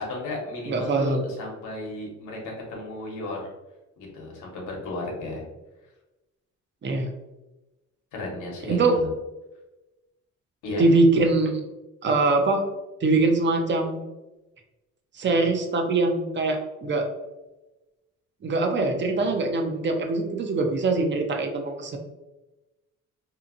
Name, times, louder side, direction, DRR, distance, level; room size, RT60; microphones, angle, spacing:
voice 1, 0.1-3.5 4.0-5.4 8.1-9.1 10.6-10.9, left 2 dB, 85° left, -1 dB, 0.9 m, -34 dB
voice 2, 0.7-1.2 6.8-7.1 8.7-9.0 10.8-11.7 12.0-12.6 13.0-14.0 15.1-17.1 18.4-22.0, right 3 dB, 40° right, 4 dB, 0.5 m, -23 dB
2.7 x 2.6 x 2.5 m, 1.0 s
cardioid pair, 90°, 30 cm